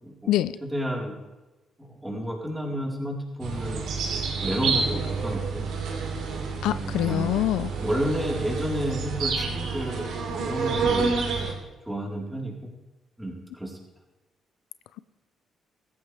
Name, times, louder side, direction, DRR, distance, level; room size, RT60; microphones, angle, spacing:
voice 1, 0.0-0.3 0.6-1.1 1.8-3.8 4.1-5.7 6.6-7.3 7.8-11.2 11.9-12.5 13.2-13.8, equal, 5° right, -2 dB, 4.1 m, -31 dB
sound 1, 3.4-11.5, right 4 dB, 80° right, 3.0 m, -29 dB
voice 2, 6.6-7.7, left 14 dB, 90° left, 14 dB, 0.5 m, -24 dB
17.0 x 14.5 x 3.4 m, 1.1 s
cardioid pair, 90°, 0 cm